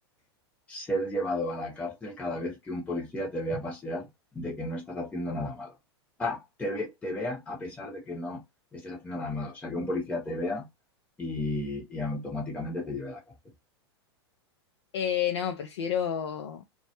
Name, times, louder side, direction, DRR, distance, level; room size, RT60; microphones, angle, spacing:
voice 1, 0.7-4.1 4.3-5.8 6.2-8.4 8.7-10.7 11.2-13.2, left 1 dB, 10° left, 0.8 m, -33 dB
voice 2, 14.9-16.8, left 9 dB, 80° left, 0.4 m, -30 dB
2.2 x 2.0 x 2.8 m
hypercardioid pair, 105°, 14 cm